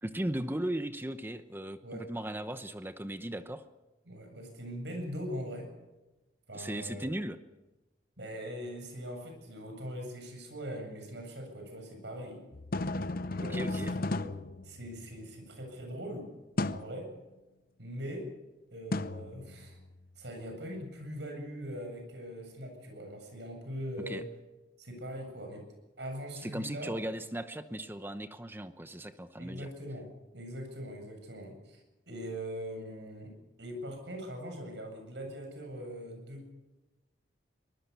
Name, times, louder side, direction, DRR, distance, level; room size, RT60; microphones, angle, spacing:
voice 1, 0.0-3.6 6.5-7.4 13.4-14.0 24.0-24.2 26.4-29.7, right 1 dB, 10° right, 10 dB, 0.8 m, -37 dB
voice 2, 4.1-5.7 6.5-7.1 8.2-12.4 13.3-14.4 14.6-16.3 16.7-17.1 17.8-18.3 18.7-19.8 20.2-24.2 24.8-25.7 26.0-26.9 29.4-30.1 30.3-33.3 33.6-36.5, equal, 70° right, 4 dB, 7.8 m, -41 dB
sound 1, 12.5-15.3 16.6-17.0 18.9-20.0, left 2 dB, 55° left, 0.8 m, -35 dB
24.0 x 20.0 x 6.9 m, 1.1 s
head